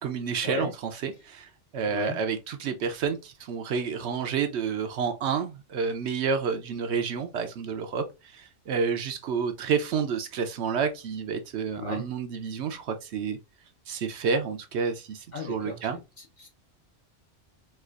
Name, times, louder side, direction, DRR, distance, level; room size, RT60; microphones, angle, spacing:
voice 1, 0.0-13.4 13.9-16.0, right 6 dB, 70° right, 0.8 m, -30 dB
voice 2, 1.9-2.2 11.8-12.0 15.3-15.8 16.4-16.5, left 3 dB, 45° left, 0.8 m, -34 dB
4.4 x 2.4 x 2.4 m
omnidirectional pair, 1.2 m